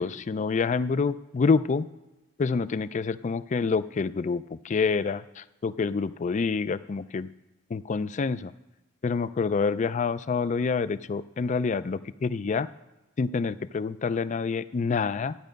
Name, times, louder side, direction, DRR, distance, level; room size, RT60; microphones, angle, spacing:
voice 1, 0.0-1.9 2.4-7.3 7.7-8.5 9.0-12.7 13.2-15.3, left 4 dB, 40° left, 15 dB, 0.4 m, -27 dB
13.0 x 9.1 x 5.2 m, 1.1 s
head